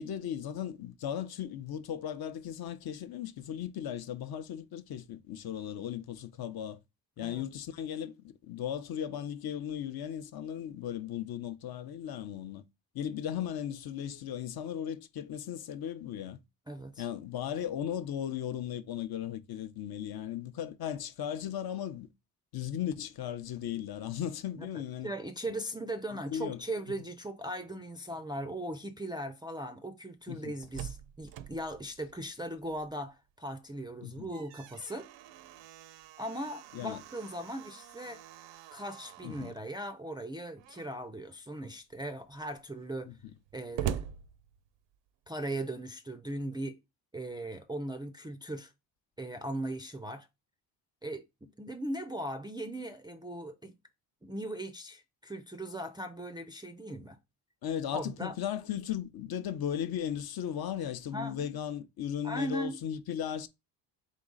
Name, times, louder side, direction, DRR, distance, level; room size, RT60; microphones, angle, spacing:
voice 1, 0.0-6.8 7.2-12.6 12.9-16.4 17.0-22.1 22.5-25.1 26.3-26.6 30.3-30.5 34.0-34.3 36.7-37.0 39.2-39.5 43.1-43.2 57.6-63.5, left 10 dB, 55° left, 0.7 m, -36 dB
voice 2, 16.7-17.1 24.6-35.1 36.2-38.2 38.7-43.1 43.5-44.1 45.3-46.8 47.1-48.7 49.2-50.3 51.0-51.3 51.6-53.7 54.2-57.2 57.9-58.3 61.1-61.5 62.2-62.8, right 1 dB, 10° right, 0.3 m, -39 dB
Slam, 30.3-33.1 33.5-33.6 34.0-39.7 40.6-41.1 41.6-41.7 42.0-45.1, right 10 dB, 75° right, 0.5 m, -44 dB
3.8 x 3.1 x 3.7 m
cardioid pair, 80°, 44 cm